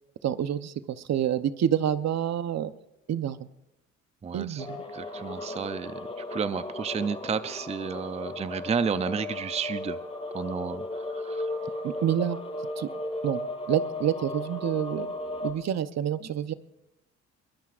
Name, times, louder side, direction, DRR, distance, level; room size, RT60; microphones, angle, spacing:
voice 1, 0.2-2.7 3.1-3.5 4.3-4.8 11.8-12.4 12.8-12.9 13.2-13.4 13.7-15.1 15.4-16.5, right 10 dB, 60° right, 12 dB, 0.9 m, -28 dB
voice 2, 4.2-4.7 4.9-5.9 6.3-10.0 10.3-11.5, right 6 dB, 20° right, 13 dB, 0.5 m, -31 dB
sound 1, 4.6-15.5, left 2 dB, 20° left, 5.5 m, -35 dB
22.0 x 21.5 x 2.5 m, 0.90 s
cardioid pair, 90°, 30 cm